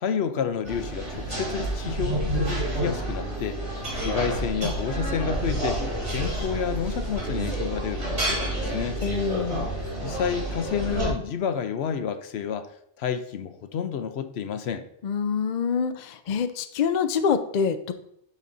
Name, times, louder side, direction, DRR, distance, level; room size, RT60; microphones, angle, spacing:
voice 1, 0.0-9.0 10.0-12.7 13.0-14.8, left 7 dB, 70° left, 9 dB, 0.9 m, -30 dB
sound 1, 0.6-11.1, right 1 dB, 80° right, 3.0 m, -29 dB
voice 2, 9.0-9.7 15.0-17.9, left 6 dB, 55° left, 9 dB, 0.5 m, -26 dB
12.0 x 4.2 x 2.6 m, 0.74 s
omnidirectional pair, 1.1 m